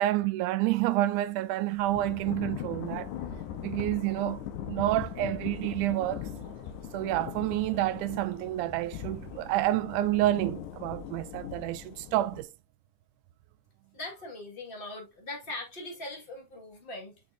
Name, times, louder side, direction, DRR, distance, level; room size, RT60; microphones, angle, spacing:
voice 1, 0.0-3.1 3.6-6.3 6.9-12.5, right 15 dB, 85° right, 2.1 m, -29 dB
sound 1, 1.7-9.7, right 1 dB, 45° right, 2.5 m, -53 dB
Thunder / Rain, 1.9-12.4, left 10 dB, 85° left, 2.3 m, -40 dB
voice 2, 13.9-17.2, left 2 dB, 20° left, 1.7 m, -40 dB
6.1 x 6.1 x 2.7 m
omnidirectional pair, 3.5 m